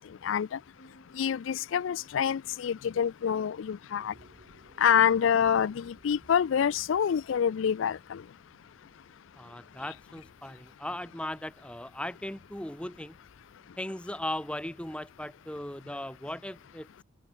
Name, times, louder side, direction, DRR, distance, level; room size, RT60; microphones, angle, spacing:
voice 1, 0.2-0.6 1.2-4.1 4.8-8.2, left 8 dB, 90° left, 0.4 m, -26 dB
sound 1, 0.7-12.2, left 1 dB, 60° left, 7.2 m, -64 dB
sound 2, 4.0-10.3, right 1 dB, 50° right, 4.2 m, -60 dB
voice 2, 9.4-13.2 13.8-17.0, left 1 dB, 5° left, 1.2 m, -38 dB
head